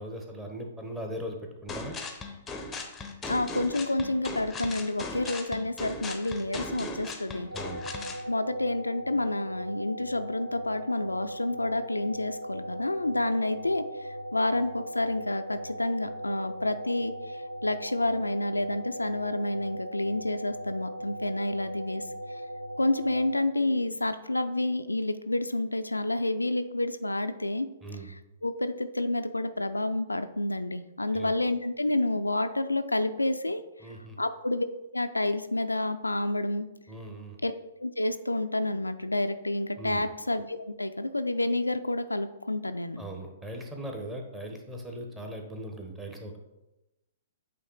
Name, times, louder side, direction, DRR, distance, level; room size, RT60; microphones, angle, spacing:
voice 1, 0.0-2.0 7.5-7.8 27.8-28.1 31.1-31.3 33.8-34.2 36.9-37.4 39.8-40.0 43.0-46.4, right 1 dB, 10° right, 2 dB, 1.1 m, -39 dB
sound 1, 1.7-8.2, left 3 dB, 10° left, 0.7 m, -38 dB
voice 2, 3.3-7.5 8.3-22.0 22.8-27.7 28.4-33.6 34.2-34.7 34.9-36.7 37.4-37.5 37.8-43.0, left 2 dB, 80° left, 9 dB, 0.4 m, -29 dB
sound 2, 7.5-23.4, right 1 dB, 80° right, 0.6 m, -39 dB
8.4 x 3.2 x 4.7 m, 0.96 s
figure-of-eight pair, 115°, 0 cm